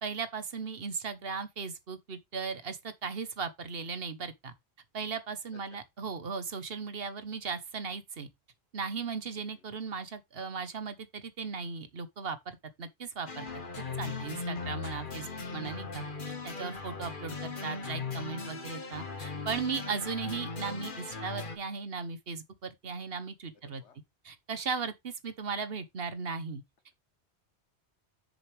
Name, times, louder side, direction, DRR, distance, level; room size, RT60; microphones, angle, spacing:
voice 1, 0.0-4.5 4.9-8.3 8.7-13.5 14.0-23.8 24.2-26.6, right 5 dB, 60° right, 1.3 m, -37 dB
voice 2, 9.3-9.7 14.5-14.7 17.0-17.2 23.6-24.0, left 6 dB, 80° left, 1.4 m, -58 dB
sound 1, 13.3-21.6, left 4 dB, 50° left, 1.5 m, -38 dB
7.7 x 6.9 x 3.4 m
omnidirectional pair, 1.1 m